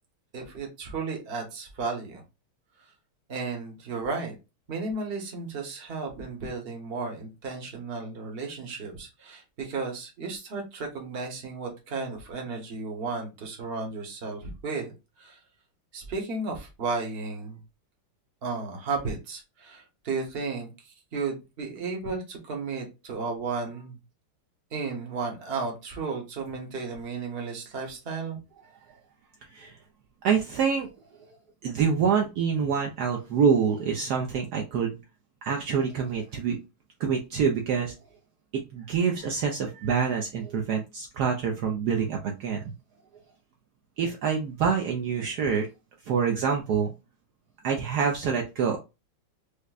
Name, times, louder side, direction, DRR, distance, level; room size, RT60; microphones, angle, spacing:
voice 1, 0.3-2.2 3.3-4.3 4.7-15.4 15.9-17.6 18.4-24.0 24.7-28.4, right 4 dB, 40° right, 2 dB, 0.9 m, -34 dB
voice 2, 30.2-30.9 31.6-35.0 35.5-36.6 37.0-37.9 38.5-42.6 44.0-45.7 46.1-46.9 47.6-48.8, right 6 dB, 80° right, 2 dB, 0.8 m, -26 dB
5.0 x 2.2 x 2.3 m, 0.26 s
omnidirectional pair, 2.4 m